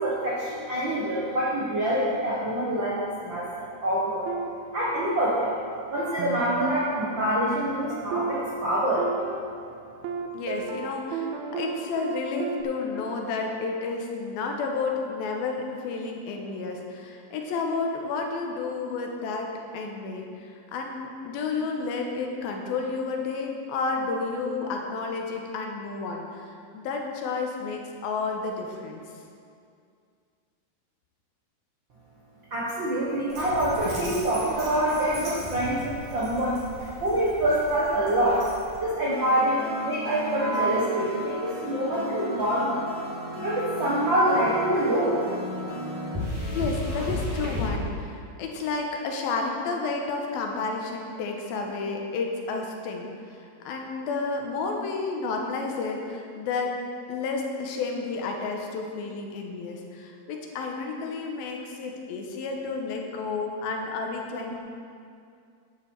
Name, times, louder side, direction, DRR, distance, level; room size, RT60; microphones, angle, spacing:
voice 1, 0.0-4.3 4.7-5.5 5.9-9.1 32.5-36.6 37.0-38.4 38.8-42.8 43.4-45.2, right 1 dB, 65° right, -6 dB, 1.1 m, -25 dB
sound 1, 4.3-5.5 6.0-12.6, right 4 dB, 85° right, 2.6 m, -34 dB
voice 2, 10.3-29.0 46.5-56.8 57.1-64.6, left 4 dB, 80° left, 2 dB, 2.9 m, -31 dB
Dog, 33.3-38.8, right 1 dB, 50° right, 4.3 m, -39 dB
sound 2, 39.0-47.7, left 1 dB, 10° right, 1.7 m, -34 dB
11.0 x 9.2 x 4.6 m, 2.4 s
omnidirectional pair, 4.3 m